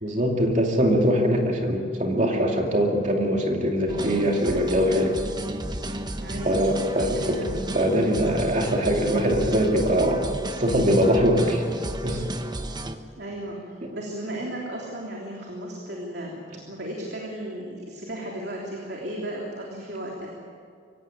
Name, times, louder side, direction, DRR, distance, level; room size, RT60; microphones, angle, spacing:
voice 1, 0.0-5.2 6.4-10.2 10.5-11.6 12.0-12.2 13.8-13.9, equal, 40° right, 1 dB, 2.5 m, -22 dB
sound 1, 3.9-13.0, right 1 dB, 25° right, 1.1 m, -33 dB
voice 2, 6.2-7.5 13.2-16.4 16.7-20.3, right 1 dB, 60° right, -2 dB, 3.2 m, -35 dB
24.5 x 16.5 x 9.2 m, 2.3 s
head